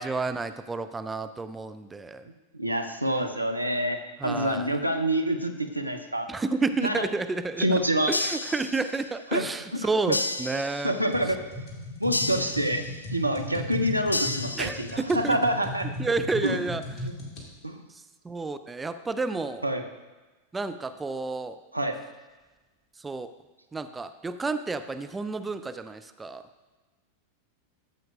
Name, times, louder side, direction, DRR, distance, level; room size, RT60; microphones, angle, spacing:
voice 1, 0.0-2.3 4.2-4.8 6.3-7.8 8.1-10.9 14.6-15.4 16.0-16.8 17.9-19.6 20.5-21.6 23.0-23.3 23.7-26.4, right 3 dB, 10° right, 10 dB, 0.4 m, -30 dB
voice 2, 2.6-6.3 6.8-7.1 7.6-8.1 9.3-9.5 10.1-10.2 10.8-11.4 12.0-12.8 13.1-14.9 15.1-15.9 16.4-16.6 17.0-17.1 17.6-17.8 19.6-19.8 21.7-22.0, right 1 dB, 85° right, 6 dB, 0.7 m, -26 dB
sound 1, 8.1-9.2 10.1-11.2 12.1-13.2 14.1-15.2, left 2 dB, 80° left, 0.4 m, -32 dB
sound 2, 11.1-17.5, left 1 dB, 35° left, 2.1 m, -37 dB
13.5 x 7.6 x 2.5 m, 1.2 s
figure-of-eight pair, 90°, 0 cm